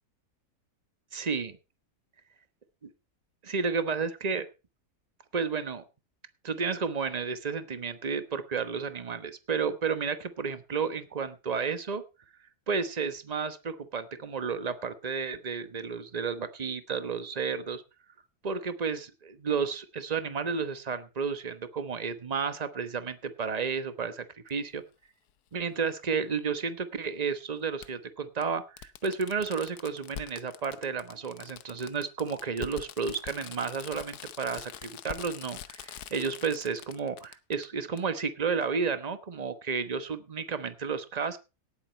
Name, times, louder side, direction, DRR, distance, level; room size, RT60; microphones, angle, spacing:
voice 1, 1.1-1.5 2.8-2.9 3.4-4.4 5.3-5.8 6.4-12.0 12.7-17.8 18.4-24.8 25.5-41.4, right 5 dB, 30° right, 11 dB, 1.1 m, -32 dB
Fireworks, 24.5-24.6 26.1-26.2 27.8-27.9 28.4-28.5 28.8-37.7 38.0-38.1, left 10 dB, 85° left, 1.3 m, -44 dB
18.0 x 8.5 x 4.3 m, 0.30 s
omnidirectional pair, 1.6 m